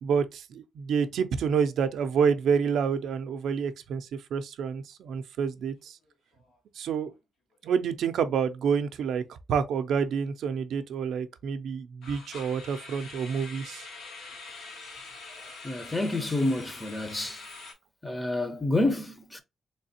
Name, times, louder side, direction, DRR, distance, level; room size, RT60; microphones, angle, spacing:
voice 1, 0.0-6.0 6.8-7.1 7.6-9.2 9.5-13.9, right 6 dB, 75° right, 0.4 m, -28 dB
sound 1, 5.8-6.1 6.4-6.6 7.1-7.2 12.0-17.7, left 3 dB, 80° left, 1.5 m, -44 dB
voice 2, 15.6-17.4 18.0-19.4, left 2 dB, 15° left, 0.6 m, -28 dB
3.3 x 3.2 x 2.7 m
cardioid pair, 110°, 0 cm